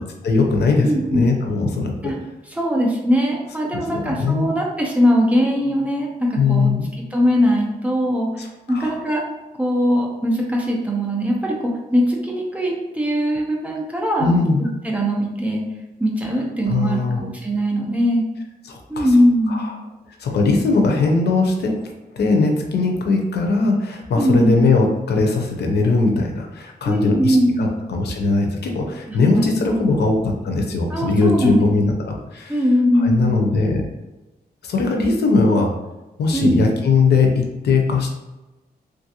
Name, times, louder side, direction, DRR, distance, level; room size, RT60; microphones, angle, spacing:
voice 1, 0.2-1.9 3.9-4.5 6.4-6.8 8.4-8.5 8.7-8.9 14.2-14.6 16.7-17.3 18.7-19.1 19.5-19.7 20.2-21.8 22.1-32.6 32.9-33.8 34.6-35.7 36.2-38.1, left 3 dB, 90° left, 2 dB, 0.6 m, -19 dB
voice 2, 0.8-1.3 2.0-2.2 2.5-6.7 7.1-9.2 9.6-14.3 14.6-15.6 16.0-18.2 18.9-19.6 24.2-24.6 26.9-27.7 29.3-29.4 29.9-30.0 30.9-31.6 32.5-33.4 36.3-36.6, equal, 10° right, -2 dB, 0.6 m, -20 dB
3.1 x 2.5 x 2.8 m, 1.1 s
wide cardioid pair, 145°, 17 cm